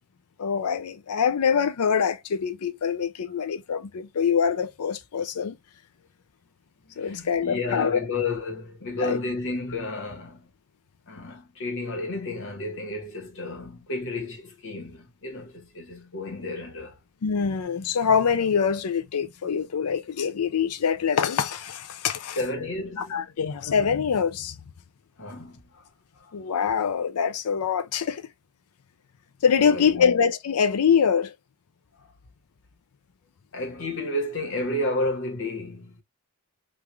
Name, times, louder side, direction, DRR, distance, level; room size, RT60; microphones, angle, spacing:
voice 1, 0.4-5.6 7.0-8.0 9.0-9.2 17.2-22.4 23.0-24.6 26.3-28.3 29.4-31.3, left 6 dB, 85° left, 0.5 m, -24 dB
voice 2, 6.9-10.5 11.1-17.0 22.4-23.2 25.2-25.8 26.2-26.3 29.6-30.1 32.0-32.1 33.5-36.0, left 2 dB, 60° left, 1.3 m, -32 dB
3.2 x 2.4 x 3.2 m
head